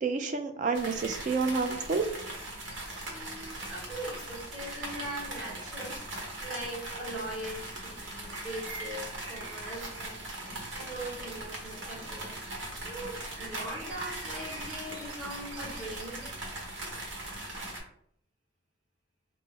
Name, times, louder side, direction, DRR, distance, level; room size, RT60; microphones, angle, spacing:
voice 1, 0.0-2.0, right 4 dB, 40° right, 6 dB, 0.4 m, -29 dB
sound 1, 0.7-17.8, right 1 dB, 65° right, 1.0 m, -40 dB
voice 2, 3.1-6.0 6.4-10.2 10.7-12.3 12.8-16.3, right 1 dB, 5° right, -10 dB, 1.2 m, -41 dB
4.0 x 2.1 x 3.6 m, 0.67 s
head